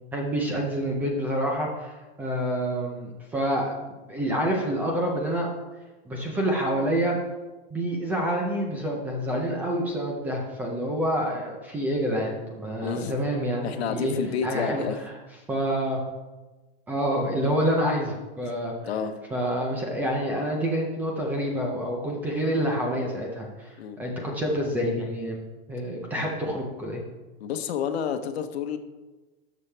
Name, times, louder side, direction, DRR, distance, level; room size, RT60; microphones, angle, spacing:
voice 1, 0.1-5.5 6.1-7.2 7.7-14.1 14.4-14.8 15.5-16.0 16.9-18.8 19.3-25.4 25.7-27.0, equal, 5° right, 0 dB, 0.4 m, -27 dB
voice 2, 12.8-13.1 13.6-15.0 18.8-19.1 23.8-24.0 27.4-28.8, left 7 dB, 85° left, 8 dB, 1.1 m, -29 dB
12.5 x 6.5 x 3.3 m, 1.2 s
supercardioid pair, 180°, 31 cm